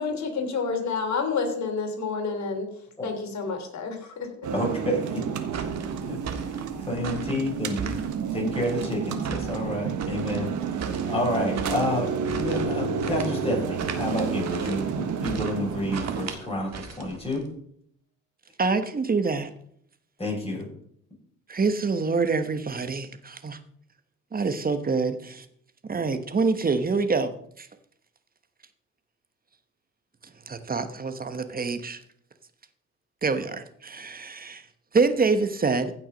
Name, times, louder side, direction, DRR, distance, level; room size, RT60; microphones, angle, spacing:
voice 1, 0.0-2.7 3.0-4.3, left 4 dB, 65° left, 3 dB, 3.3 m, -29 dB
sound 1, 4.4-16.3, right 6 dB, 75° right, 1.4 m, -30 dB
voice 2, 4.5-5.2 5.5-5.7 6.1-7.9 8.3-10.5 10.8-17.5 20.2-20.7, left 1 dB, 20° left, -1 dB, 5.8 m, -30 dB
sound 2, 5.5-17.5, right 6 dB, 60° right, 1.8 m, -38 dB
voice 3, 18.6-19.5 21.5-23.6 24.3-25.4 25.9-27.7 30.5-32.0 33.2-34.6 34.9-35.9, right 4 dB, 30° right, 10 dB, 1.2 m, -26 dB
15.5 x 6.1 x 5.2 m, 0.68 s
cardioid pair, 90°, 30 cm